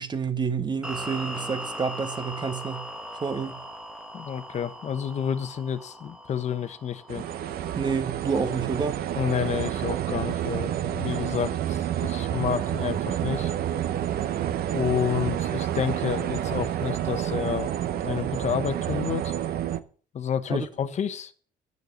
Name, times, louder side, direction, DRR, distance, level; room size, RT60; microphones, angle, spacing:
voice 1, 0.0-2.9 3.2-3.6 7.2-7.3 7.7-9.0 20.5-20.7, right 5 dB, 25° right, 1.2 m, -29 dB
sound 1, 0.8-8.0, equal, 5° right, 1.4 m, -39 dB
voice 2, 4.1-7.2 9.2-13.5 14.7-17.7 18.0-19.3 20.1-21.3, left 8 dB, 40° left, 1.0 m, -30 dB
sound 2, 7.1-19.8, right 11 dB, 65° right, 0.8 m, -29 dB
9.6 x 6.7 x 7.9 m
cardioid pair, 110°, 17 cm